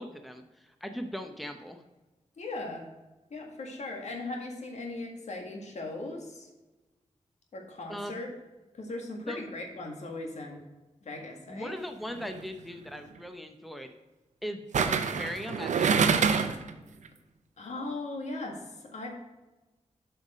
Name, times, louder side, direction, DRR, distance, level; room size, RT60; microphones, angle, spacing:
voice 1, 0.0-1.8 7.9-8.2 9.2-9.4 11.5-13.9 14.4-16.6, equal, ahead, 6 dB, 0.8 m, -39 dB
voice 2, 2.4-2.9 3.3-6.5 7.5-8.3 8.7-10.6 11.0-11.7 17.6-19.1, left 2 dB, 70° left, 2 dB, 1.8 m, -38 dB
sound 1, 12.1-12.4 14.7-16.7 17.0-17.1, right 6 dB, 90° right, 0.7 m, -26 dB
7.8 x 5.7 x 5.0 m, 1.1 s
wide cardioid pair, 115°, 12 cm